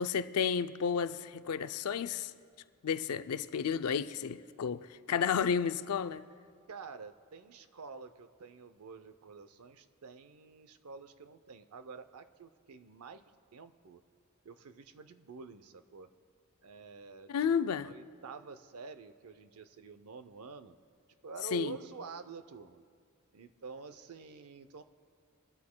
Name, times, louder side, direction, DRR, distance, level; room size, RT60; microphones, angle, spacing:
voice 1, 0.0-2.3 2.8-6.2 17.3-17.9 21.5-21.7, left 7 dB, 85° left, 0.4 m, -32 dB
voice 2, 6.7-13.2 13.5-14.0 14.4-16.1 16.6-17.3 17.8-20.7 21.2-22.8 23.3-24.8, right 5 dB, 85° right, 0.6 m, -48 dB
22.0 x 13.0 x 2.2 m
head